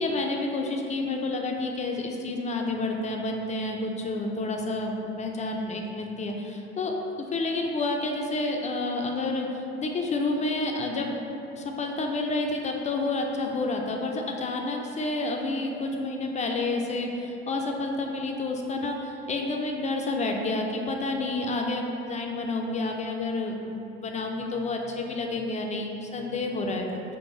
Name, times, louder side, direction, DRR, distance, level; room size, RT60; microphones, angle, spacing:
voice 1, 0.0-6.9 7.3-11.1 11.6-26.9, left 2 dB, 25° left, 1 dB, 0.3 m, -29 dB
4.5 x 2.4 x 2.8 m, 2.9 s
hypercardioid pair, 60°, 30 cm